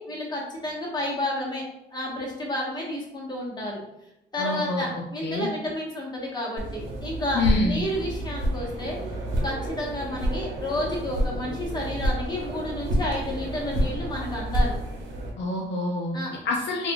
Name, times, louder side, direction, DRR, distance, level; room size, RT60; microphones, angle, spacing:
voice 1, 0.0-1.6 1.9-3.8 4.3-9.0 9.4-14.7 16.1-16.4, left 1 dB, 20° left, -3 dB, 1.1 m, -31 dB
voice 2, 4.4-5.5 7.3-7.8 15.4-16.2 16.4-16.9, left 3 dB, 65° left, 0 dB, 0.5 m, -27 dB
sound 1, 6.6-15.3, right 1 dB, 70° right, 0.9 m, -29 dB
3.5 x 2.4 x 2.2 m, 0.85 s
cardioid pair, 90°, 20 cm